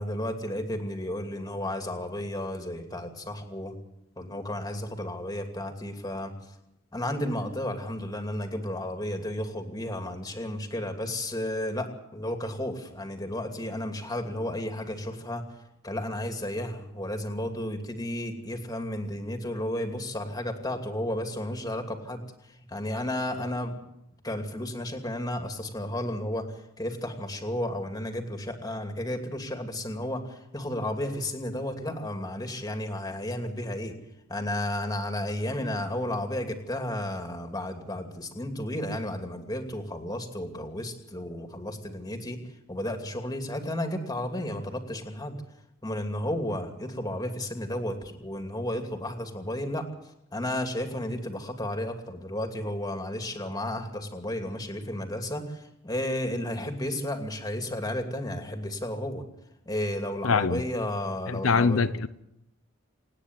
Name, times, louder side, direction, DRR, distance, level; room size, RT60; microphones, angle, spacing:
voice 1, 0.0-3.8 4.2-6.3 6.9-11.9 12.1-15.4 15.8-22.2 22.7-23.8 24.2-26.4 26.8-33.9 34.3-42.4 42.7-45.4 45.8-49.8 50.3-59.2 59.7-61.9, left 1 dB, 20° left, 2.7 m, -33 dB
voice 2, 60.2-60.6 61.3-62.1, left 5 dB, 90° left, 0.7 m, -23 dB
27.5 x 9.8 x 9.6 m
head